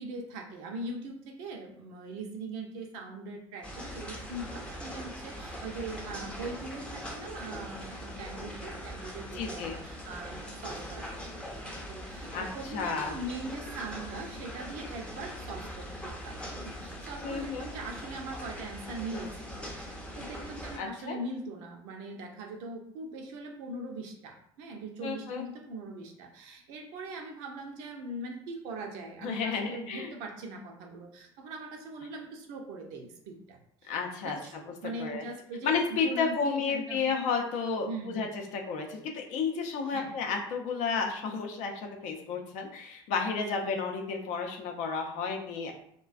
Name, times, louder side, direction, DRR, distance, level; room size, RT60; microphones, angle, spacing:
voice 1, 0.0-11.3 11.6-19.3 19.8-33.9 34.2-35.7 36.0-37.0 37.9-38.3 39.8-40.2 43.6-43.9, right 2 dB, 60° right, 2 dB, 0.5 m, -41 dB
sound 1, 3.6-20.8, equal, 5° left, 0.6 m, -41 dB
voice 2, 9.3-9.8 12.3-13.2 17.2-17.7 20.8-21.2 25.0-25.4 29.2-30.1 33.9-34.4 35.0-35.2 35.6-45.7, left 5 dB, 60° left, 2 dB, 0.5 m, -32 dB
2.3 x 2.2 x 2.4 m, 0.68 s
hypercardioid pair, 75°, 14 cm